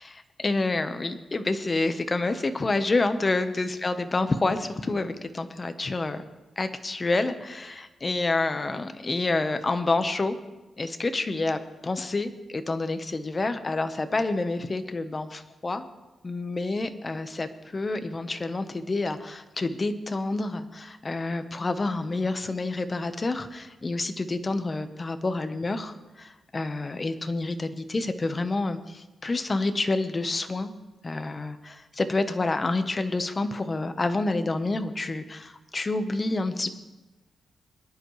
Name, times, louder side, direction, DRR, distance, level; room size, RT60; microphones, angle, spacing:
voice 1, 0.0-6.2 6.6-10.4 10.8-15.9 16.2-30.7 31.0-36.7, left 2 dB, 30° left, 9 dB, 1.0 m, -28 dB
21.5 x 11.0 x 3.2 m, 1.1 s
cardioid pair, 105°, 0 cm